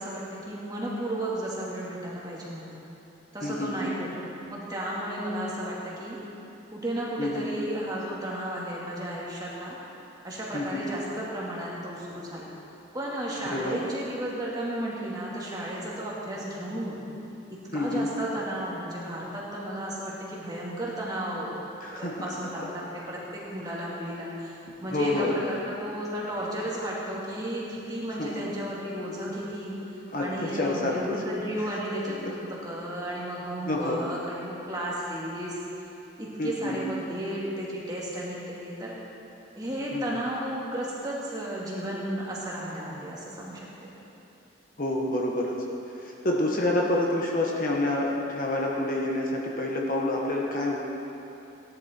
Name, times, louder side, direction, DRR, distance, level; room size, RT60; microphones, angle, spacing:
voice 1, 0.0-2.8 3.3-6.2 6.7-9.8 10.2-12.5 12.9-17.0 17.7-21.6 21.9-29.7 30.2-32.3 32.6-35.5 36.2-39.0 39.5-43.9, right 1 dB, 20° right, -6 dB, 2.3 m, -33 dB
voice 2, 3.4-3.8 7.2-7.4 10.5-10.8 13.4-13.8 17.7-18.1 21.8-22.2 24.9-25.3 28.1-28.4 30.1-31.0 32.2-32.3 33.7-34.0 36.4-36.8 39.9-40.2 44.8-45.5 45.9-50.8, left 1 dB, 45° left, -2 dB, 1.4 m, -28 dB
17.0 x 11.0 x 4.5 m, 2.9 s
head